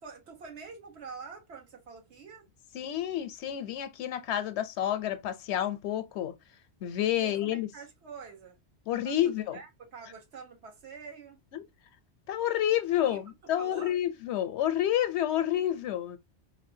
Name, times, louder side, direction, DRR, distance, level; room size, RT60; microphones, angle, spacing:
voice 1, 0.0-2.4 7.1-8.6 9.0-11.4 13.0-13.2 13.6-13.9, right 5 dB, 75° right, 1.2 m, -46 dB
voice 2, 2.7-6.3 6.8-7.7 8.9-9.6 11.5-11.7 12.3-16.2, left 11 dB, 80° left, 0.9 m, -29 dB
4.0 x 2.2 x 2.6 m
omnidirectional pair, 1.1 m